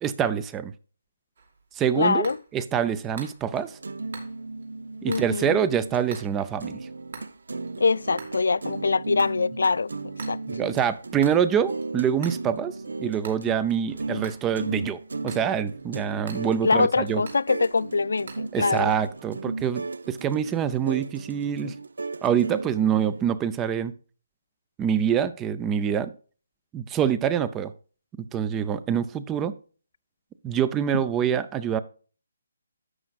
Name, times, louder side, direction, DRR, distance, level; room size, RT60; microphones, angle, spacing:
voice 1, 0.0-0.7 1.8-2.3 2.5-3.8 5.0-6.8 10.5-12.7 13.0-17.2 18.5-21.7 22.2-23.9 24.8-26.1 26.7-27.7 28.3-29.5 30.4-31.8, right 8 dB, 10° right, 0.4 m, -25 dB
sound 1, 1.4-18.5, right 4 dB, 60° right, 2.5 m, -47 dB
voice 2, 2.0-2.4 5.1-5.7 7.8-10.4 16.6-18.9 21.6-21.7 30.9-31.0, left 4 dB, 80° left, 0.3 m, -24 dB
sound 2, 3.5-6.1 6.4-23.2, right 3 dB, 85° right, 0.5 m, -36 dB
11.0 x 7.5 x 2.4 m
hypercardioid pair, 170°, 0 cm